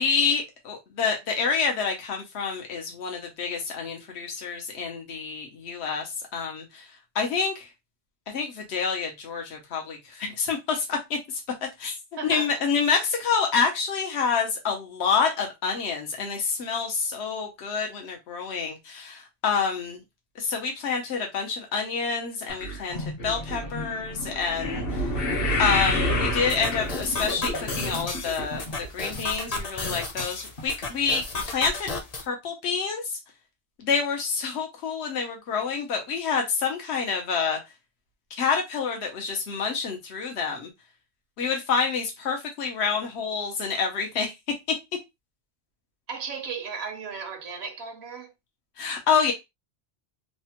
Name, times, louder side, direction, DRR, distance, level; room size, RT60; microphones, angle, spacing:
voice 1, 0.0-6.9 7.1-7.7 8.3-11.4 11.8-12.0 12.2-20.0 20.4-25.1 25.6-28.6 28.9-31.9 32.3-33.2 33.8-37.6 38.4-40.7 41.4-44.3 48.8-49.3, left 5 dB, 90° left, 1.0 m, -28 dB
voice 2, 12.2-12.6 46.1-48.3, right 5 dB, 75° right, 0.9 m, -35 dB
sound 1, 22.5-28.9 29.1-29.6 30.2-30.3 30.6-30.7, left 1 dB, 60° left, 1.1 m, -29 dB
sound 2, 26.5-32.2, left 3 dB, 45° left, 0.6 m, -33 dB
3.2 x 2.1 x 2.8 m
omnidirectional pair, 1.1 m